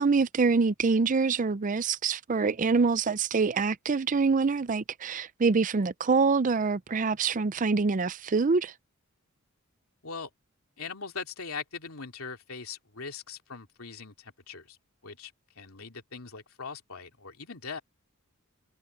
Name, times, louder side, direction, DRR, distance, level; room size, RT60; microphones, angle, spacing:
voice 1, 0.0-8.7, right 4 dB, 35° right, 0.5 m, -25 dB
voice 2, 10.8-14.8 15.0-17.8, left 5 dB, 75° left, 2.9 m, -41 dB
head